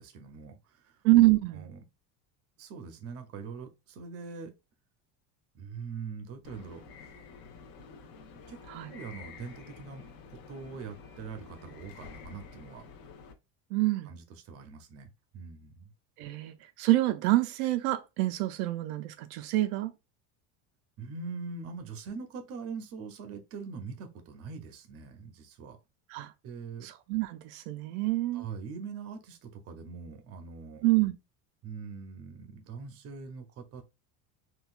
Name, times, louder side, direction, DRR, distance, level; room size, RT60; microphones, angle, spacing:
voice 1, 0.0-1.0 1.5-1.8 2.6-4.5 5.5-7.1 8.5-8.6 8.9-12.8 14.0-15.9 21.0-25.8 26.4-26.9 28.3-30.8 31.6-33.8, right 5 dB, 35° right, 0.6 m, -43 dB
voice 2, 1.0-1.6 8.7-8.9 13.7-14.1 16.2-19.9 26.1-26.3 26.8-28.5 30.8-31.1, right 18 dB, 80° right, 0.5 m, -26 dB
sound 1, 6.4-13.3, left 5 dB, 55° left, 1.0 m, -49 dB
3.8 x 2.3 x 2.4 m
cardioid pair, 165°, 40 cm